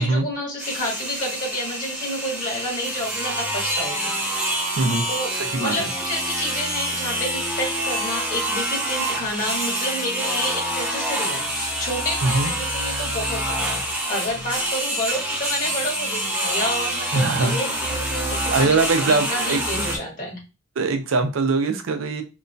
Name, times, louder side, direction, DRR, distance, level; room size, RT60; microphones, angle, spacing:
voice 1, 0.0-4.1 5.1-5.3 5.6-18.8 19.1-20.4, equal, 45° left, -2 dB, 1.4 m, -29 dB
sound 1, 0.6-20.0, right 1 dB, 5° right, 0.6 m, -26 dB
voice 2, 4.8-5.1 5.3-5.9 12.2-12.5 17.1-17.6 18.5-19.6 20.8-22.2, right 3 dB, 85° right, 7 dB, 0.5 m, -22 dB
2.9 x 2.2 x 2.6 m, 0.29 s
head